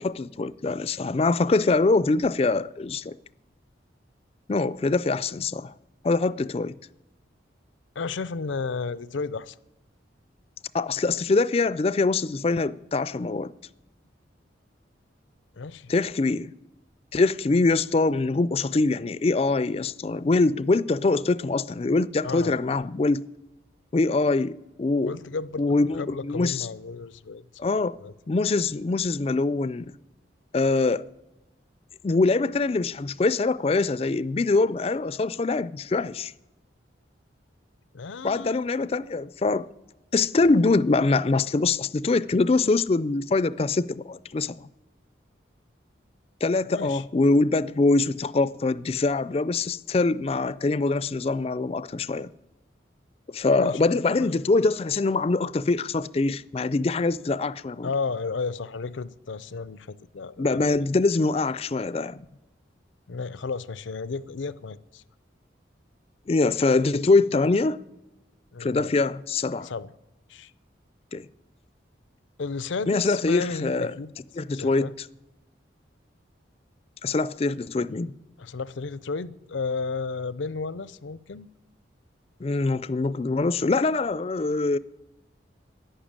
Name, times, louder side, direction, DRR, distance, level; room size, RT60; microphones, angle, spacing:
voice 1, 0.0-3.1 4.5-5.7 6.0-6.7 10.7-13.5 15.9-16.5 17.1-23.2 23.9-25.1 25.6-26.7 27.6-28.0 28.3-29.8 30.5-31.0 32.0-36.3 38.2-39.7 40.1-44.7 46.4-52.3 53.3-57.9 60.4-62.3 66.3-67.8 68.6-69.7 71.1-71.3 72.9-73.9 74.4-74.9 77.0-78.1 82.4-84.8, left 3 dB, 30° left, 0.4 m, -24 dB
voice 2, 8.0-9.6 15.6-15.9 22.2-22.6 25.0-27.4 27.8-28.1 37.9-38.6 46.7-47.0 53.6-54.3 57.8-60.7 63.1-65.0 68.5-68.9 69.6-69.9 70.3-70.5 72.4-74.1 74.5-74.9 78.4-81.5, left 4 dB, 85° left, 0.6 m, -33 dB
11.5 x 10.0 x 8.8 m
head